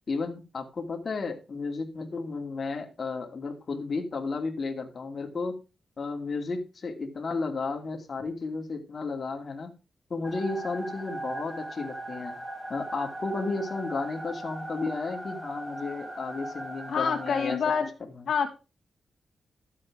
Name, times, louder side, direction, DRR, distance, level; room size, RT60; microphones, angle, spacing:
voice 1, 0.1-5.6 6.0-9.7 10.1-12.3 12.7-17.6 18.2-18.3, left 3 dB, 45° left, 3 dB, 2.6 m, -33 dB
sound 1, 10.2-17.6, right 1 dB, 10° right, 4.4 m, -39 dB
voice 2, 16.9-17.9 18.3-18.5, left 6 dB, 75° left, 2 dB, 2.5 m, -26 dB
13.0 x 7.5 x 4.8 m, 0.30 s
wide cardioid pair, 105°, 0 cm